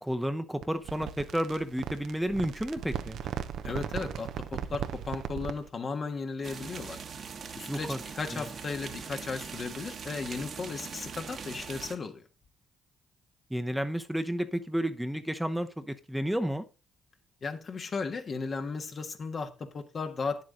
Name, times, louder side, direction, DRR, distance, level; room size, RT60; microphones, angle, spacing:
voice 1, 0.0-3.2 7.7-8.0 8.3-8.5 13.5-16.6, equal, 5° right, 0.9 m, -31 dB
sound 1, 0.6-5.7, right 9 dB, 75° right, 0.7 m, -37 dB
voice 2, 3.6-7.0 7.5-12.2 17.4-20.4, left 4 dB, 50° left, 1.4 m, -35 dB
sound 2, 6.4-12.0, right 6 dB, 55° right, 1.4 m, -41 dB
9.5 x 7.6 x 3.9 m
supercardioid pair, 55°, 0 cm